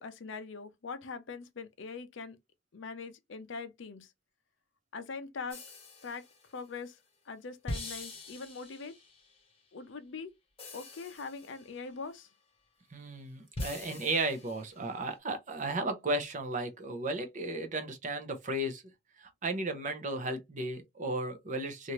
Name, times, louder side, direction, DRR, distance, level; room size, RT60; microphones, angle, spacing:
voice 1, 0.0-2.4 2.7-4.1 4.9-5.6 6.0-6.2 6.5-7.0 7.3-9.0 9.7-10.3 10.7-12.3, left 4 dB, 60° left, 0.5 m, -42 dB
sound 1, 5.5-6.6 7.7-9.4 10.6-12.0 13.6-14.9, left 2 dB, 25° left, 1.0 m, -43 dB
voice 2, 12.9-18.8 19.2-21.9, right 2 dB, 35° right, 0.6 m, -34 dB
2.7 x 2.5 x 3.0 m
head